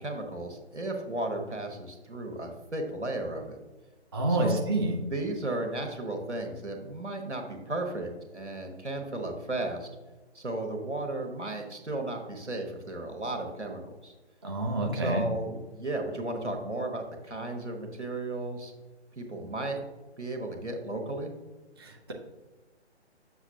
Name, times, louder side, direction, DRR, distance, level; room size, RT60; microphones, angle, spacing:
voice 1, 0.0-3.6 4.4-4.6 5.0-9.9 10.3-14.1 14.9-18.7 19.2-19.8 20.2-21.3, right 2 dB, 85° right, 3 dB, 1.4 m, -34 dB
voice 2, 4.1-5.0 14.4-15.3 21.8-22.1, right 1 dB, 25° right, 0 dB, 0.4 m, -28 dB
7.1 x 6.3 x 2.8 m, 1.2 s
figure-of-eight pair, 130°, 34 cm